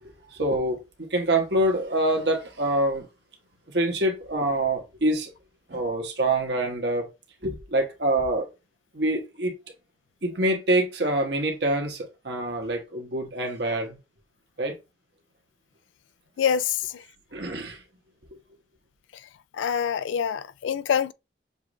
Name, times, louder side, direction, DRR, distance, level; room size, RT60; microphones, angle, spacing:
voice 1, 0.0-3.1 3.7-5.3 5.7-7.1 7.4-8.5 8.9-9.5 10.2-14.0 14.6-14.7 17.3-17.8, right 1 dB, 70° right, 1.2 m, -26 dB
voice 2, 16.4-16.8 19.6-21.1, left 7 dB, 90° left, 0.3 m, -25 dB
6.8 x 2.5 x 3.1 m
head